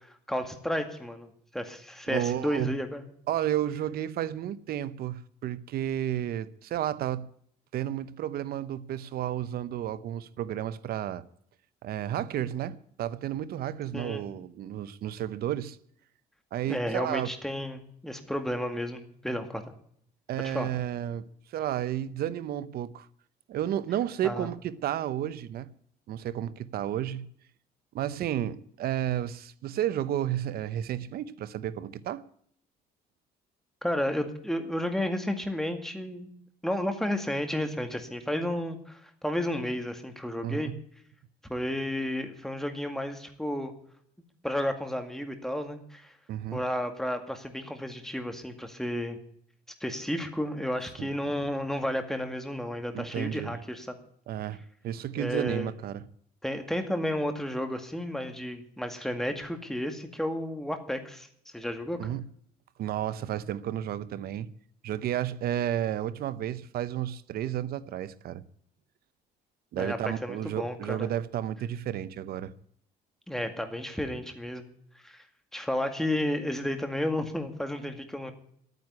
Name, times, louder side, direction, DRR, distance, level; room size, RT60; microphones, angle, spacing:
voice 1, 0.3-3.0 13.9-14.2 16.7-19.6 20.4-20.7 24.2-24.5 33.8-36.3 36.6-40.7 41.5-43.7 44.4-46.1 46.5-49.2 49.8-54.0 55.2-55.7 56.4-61.3 61.5-62.1 69.8-71.1 73.3-74.6 75.0-75.2 75.5-78.3, left 1 dB, ahead, 2.1 m, -32 dB
voice 2, 2.1-2.7 3.3-7.3 7.7-11.2 11.8-15.8 16.5-17.3 20.3-21.2 21.5-23.1 23.5-25.7 26.1-27.3 27.9-32.2 40.4-40.8 46.3-46.6 51.0-51.1 52.9-53.5 54.3-54.6 54.8-56.1 62.0-62.3 62.8-64.5 64.8-68.4 69.7-72.5, right 11 dB, 65° right, 0.8 m, -32 dB
11.5 x 9.4 x 9.5 m
cardioid pair, 110°, 17 cm